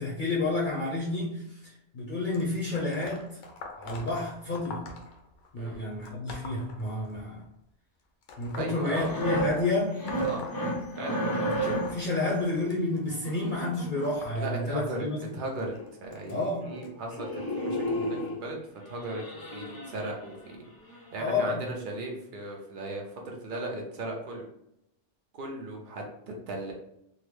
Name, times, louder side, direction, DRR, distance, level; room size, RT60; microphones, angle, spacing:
voice 1, 0.0-3.4 3.8-5.0 5.5-7.4 8.4-10.0 11.3-15.2 16.3-16.8 21.2-21.7, left 2 dB, 50° left, -4 dB, 0.8 m, -30 dB
sound 1, 2.3-7.5 8.2-11.2 11.5-16.9 17.7-17.9 19.0-19.1 20.0-20.1 20.8-20.9, left 3 dB, 85° left, 1.0 m, -46 dB
voice 2, 8.5-9.1 10.2-10.5 11.0-11.2 14.3-15.7 16.0-18.6 18.9-19.2 19.5-20.6 21.1-24.5 25.3-26.7, right 2 dB, 50° right, 0 dB, 0.8 m, -37 dB
sound 2, 8.9-12.1 13.1-14.3 15.4-15.5 15.8-15.9 16.2-16.4 16.7-16.9 17.1-18.4 18.9-20.5 20.9-21.1, right 1 dB, 30° left, 0.4 m, -32 dB
3.7 x 2.0 x 3.1 m, 0.78 s
omnidirectional pair, 1.2 m